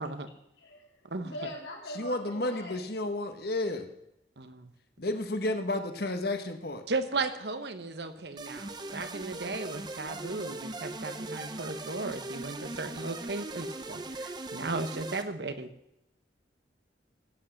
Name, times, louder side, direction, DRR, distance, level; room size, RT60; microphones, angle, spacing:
voice 1, 0.6-2.8, left 1 dB, 85° left, 0 dB, 3.3 m, -42 dB
voice 2, 1.9-3.9 5.0-6.8, left 2 dB, 55° left, 7 dB, 1.4 m, -32 dB
voice 3, 4.4-4.7 6.9-15.7, right 3 dB, 65° right, 10 dB, 1.1 m, -35 dB
sound 1, 8.4-15.2, right 2 dB, 25° right, 0.8 m, -40 dB
16.0 x 8.5 x 6.6 m, 0.83 s
head